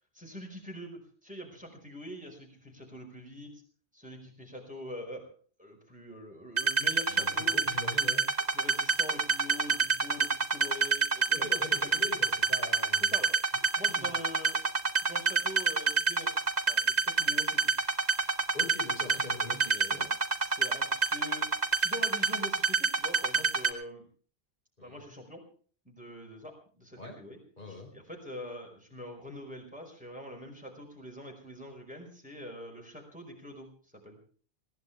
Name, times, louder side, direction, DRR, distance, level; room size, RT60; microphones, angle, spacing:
voice 1, 0.1-3.6 3.9-5.3 5.6-7.6 8.5-11.4 11.8-12.0 13.0-13.3 13.8-14.6 15.0-17.8 19.4-20.1 20.4-21.5 21.8-24.1 24.8-25.5 25.8-27.4 27.7-34.2, equal, 5° right, 1 dB, 4.9 m, -44 dB
sound 1, 6.6-23.7, right 5 dB, 40° right, 2.4 m, -27 dB
voice 2, 7.0-8.3 11.3-13.2 13.9-14.2 18.5-20.1 24.8-25.1 27.0-27.2 27.6-27.9, left 2 dB, 55° left, 1 dB, 5.4 m, -43 dB
21.0 x 18.0 x 3.4 m, 0.43 s
omnidirectional pair, 1.0 m